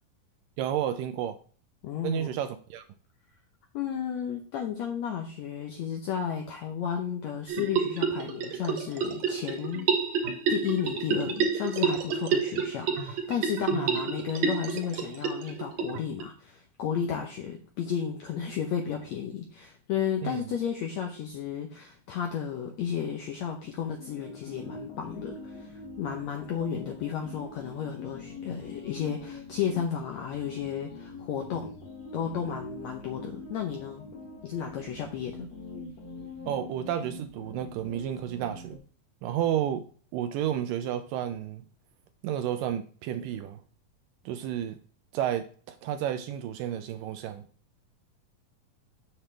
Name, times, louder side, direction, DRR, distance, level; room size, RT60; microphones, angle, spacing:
voice 1, 0.6-1.4 2.0-2.9 13.7-14.0 20.2-20.4 36.5-38.8 39.2-39.9 40.1-41.7 42.2-43.6 44.3-44.8 45.1-47.5, right 10 dB, 80° right, 2.0 m, -31 dB
voice 2, 1.8-2.3 3.7-9.9 10.5-31.7 32.1-34.1 34.4-35.5, left 8 dB, 80° left, 1.6 m, -33 dB
sound 1, 7.5-16.2, right 5 dB, 60° right, 2.1 m, -29 dB
sound 2, 24.0-38.8, left 2 dB, 45° left, 1.7 m, -44 dB
7.4 x 6.9 x 3.3 m
omnidirectional pair, 4.2 m